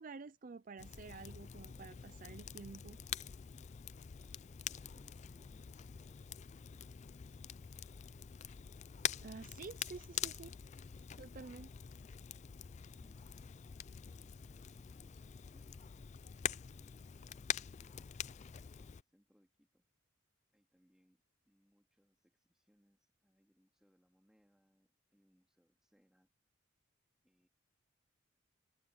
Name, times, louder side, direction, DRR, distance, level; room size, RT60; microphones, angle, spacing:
voice 1, 0.0-3.0 9.2-10.5 11.2-11.7, right 4 dB, 40° right, 0.4 m, -50 dB
Crackle, 0.8-19.0, left 9 dB, 35° left, 0.3 m, -45 dB
voice 2, 4.2-6.4 6.7-7.0 7.3-7.7 11.4-11.7 12.8-15.9 16.6-19.8 20.5-26.3 27.2-27.5, equal, 5° right, 2.6 m, -73 dB
head